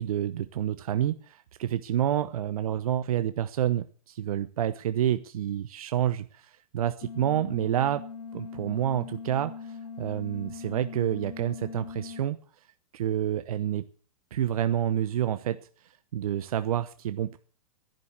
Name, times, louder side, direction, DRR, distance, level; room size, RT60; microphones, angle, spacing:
voice 1, 0.0-8.0 8.3-12.4 12.9-13.8 14.3-15.6 16.1-17.4, right 11 dB, 70° right, 11 dB, 1.0 m, -28 dB
sound 1, 7.0-12.2, left 5 dB, 75° left, 3.0 m, -41 dB
11.0 x 10.5 x 8.0 m, 0.42 s
hypercardioid pair, 125°, 19 cm